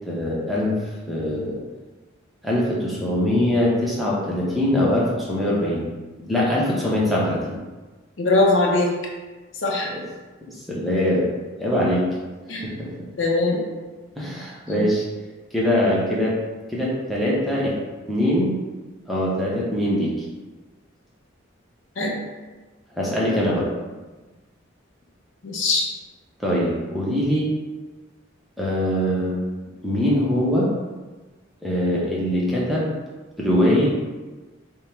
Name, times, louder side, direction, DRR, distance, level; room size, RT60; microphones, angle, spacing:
voice 1, 0.1-0.8 1.1-1.6 2.4-5.9 6.3-7.6 9.9-10.0 10.7-11.3 11.6-12.0 12.6-12.9 14.2-15.0 15.5-16.4 16.7-17.7 18.1-18.6 19.1-20.1 22.9-23.7 26.4-27.5 28.6-29.4 29.8-30.7 31.6-32.9 33.4-33.9, left 1 dB, ahead, -6 dB, 0.6 m, -22 dB
voice 2, 8.2-8.9 9.6-9.9 12.5-12.7 13.2-13.6 14.7-14.9 22.0-22.1 25.4-25.9, left 2 dB, 65° left, -1 dB, 0.6 m, -21 dB
3.6 x 2.1 x 4.3 m, 1.2 s
head